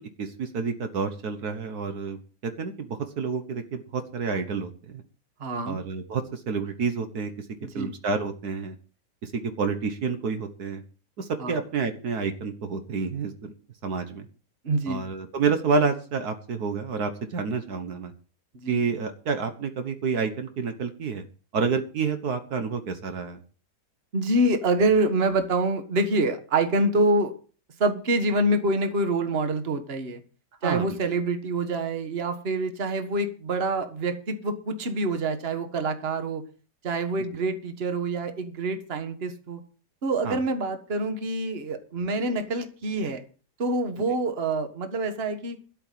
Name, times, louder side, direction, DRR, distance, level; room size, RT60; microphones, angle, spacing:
voice 1, 0.0-5.0 5.6-7.4 7.7-8.8 9.2-10.8 11.2-13.5 13.8-14.3 14.9-18.1 18.7-21.2 21.5-23.4 30.6-31.0 40.2-40.4, right 5 dB, 65° right, 8 dB, 1.7 m, -29 dB
voice 2, 5.4-5.8 7.6-7.9 11.4-11.6 14.6-15.0 18.6-18.8 24.1-27.3 27.8-30.2 30.6-36.4 36.8-39.6 40.0-43.2 43.6-45.6, right 2 dB, 40° right, 8 dB, 1.6 m, -26 dB
12.5 x 6.0 x 9.2 m, 0.38 s
omnidirectional pair, 1.8 m